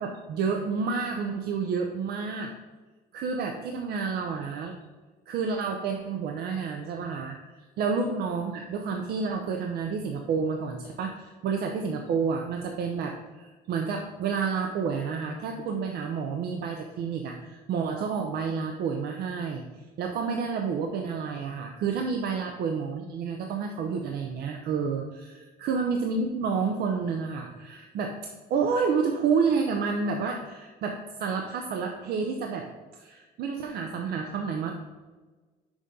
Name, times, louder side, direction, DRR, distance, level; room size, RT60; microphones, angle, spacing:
voice 1, 0.0-2.5 3.1-4.8 5.3-7.4 7.8-19.7 20.0-34.7, right 5 dB, 70° right, 3 dB, 0.7 m, -29 dB
6.3 x 3.7 x 5.4 m, 1.3 s
cardioid pair, 110°, 17 cm